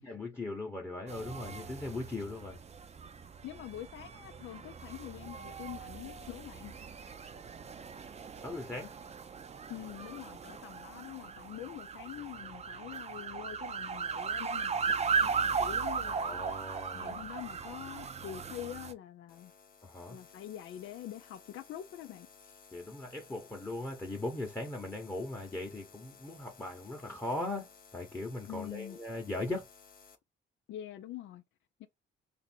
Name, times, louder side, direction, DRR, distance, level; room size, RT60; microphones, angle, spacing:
voice 1, 0.0-2.6 8.3-9.0 16.0-17.2 19.8-20.2 22.7-29.7, left 2 dB, 10° left, 0.9 m, -39 dB
sound 1, 1.1-18.9, right 5 dB, 35° right, 0.6 m, -37 dB
voice 2, 3.4-6.8 9.7-16.4 16.9-19.5 20.1-22.5 28.5-29.0 30.7-31.4 31.8-31.9, left 12 dB, 75° left, 0.5 m, -45 dB
sound 2, 19.3-30.2, left 5 dB, 50° left, 0.8 m, -57 dB
2.7 x 2.5 x 4.3 m
cardioid pair, 90°, 20 cm